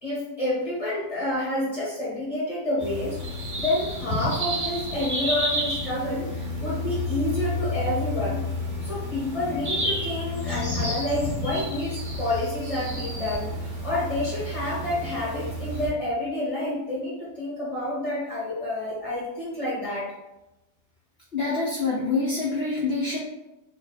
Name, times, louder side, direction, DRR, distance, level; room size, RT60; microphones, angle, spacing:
voice 1, 0.0-3.2 3.6-8.4 8.8-20.1, left 1 dB, 20° left, -10 dB, 1.4 m, -29 dB
sound 1, 2.8-15.9, left 1 dB, 35° right, 1.0 m, -30 dB
voice 2, 21.3-23.2, left 3 dB, 65° left, -5 dB, 0.6 m, -26 dB
2.8 x 2.6 x 3.8 m, 0.94 s
omnidirectional pair, 1.8 m